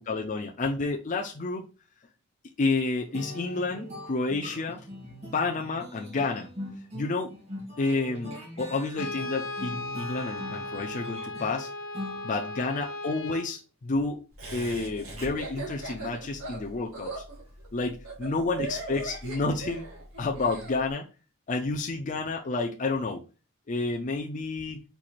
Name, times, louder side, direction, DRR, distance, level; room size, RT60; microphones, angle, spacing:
voice 1, 0.0-1.6 2.6-4.8 5.3-6.5 6.9-7.3 7.8-11.7 12.2-14.2 14.5-17.2 17.7-19.9 20.2-21.1 21.5-23.2 23.7-24.8, left 3 dB, 35° left, 0.5 m, -30 dB
sound 1, 3.1-12.8, left 1 dB, 30° right, 2.0 m, -42 dB
Brass instrument, 8.9-13.5, left 2 dB, 70° left, 0.7 m, -37 dB
Laughter, 14.4-20.7, right 2 dB, 80° right, 1.8 m, -38 dB
4.6 x 4.2 x 2.4 m
head